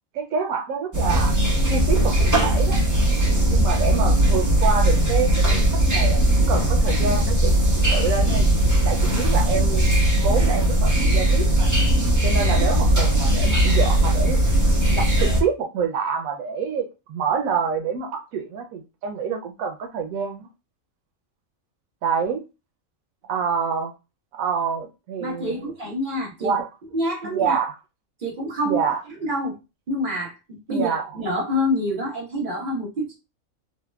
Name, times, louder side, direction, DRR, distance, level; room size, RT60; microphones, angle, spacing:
voice 1, 0.1-1.4 1.7-2.8 3.5-7.6 7.9-11.7 12.2-14.4 14.9-20.5 22.0-22.4 23.3-23.9 24.3-25.6 26.4-26.7 27.2-27.7 28.7-29.0 30.7-31.1, right 6 dB, 90° right, 1.0 m, -27 dB
sound 1, 0.9-15.4, right 1 dB, 15° right, 0.8 m, -19 dB
voice 2, 25.2-26.5 26.9-27.6 28.2-28.8 29.2-29.5 29.9-33.1, equal, 40° right, 1.2 m, -27 dB
4.1 x 2.0 x 2.2 m
omnidirectional pair, 1.4 m